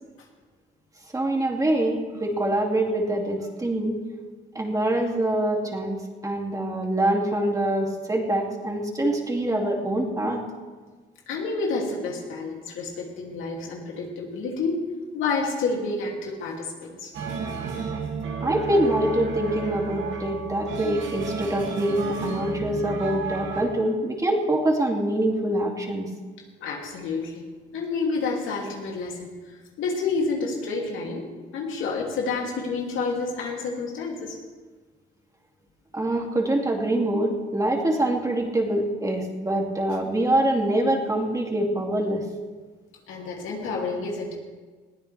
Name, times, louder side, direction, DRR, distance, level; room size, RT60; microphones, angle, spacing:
voice 1, 1.1-4.0 4.5-10.4 18.4-26.1 35.9-42.2, right 1 dB, 15° right, 0 dB, 2.7 m, -25 dB
voice 2, 11.3-14.8 15.1-17.1 26.6-27.5 27.7-34.4 43.1-44.4, left 4 dB, 85° left, -1 dB, 2.9 m, -29 dB
sound 1, 17.1-23.6, right 5 dB, 70° right, 2.5 m, -32 dB
21.0 x 14.5 x 3.5 m, 1.4 s
cardioid pair, 90°, 20 cm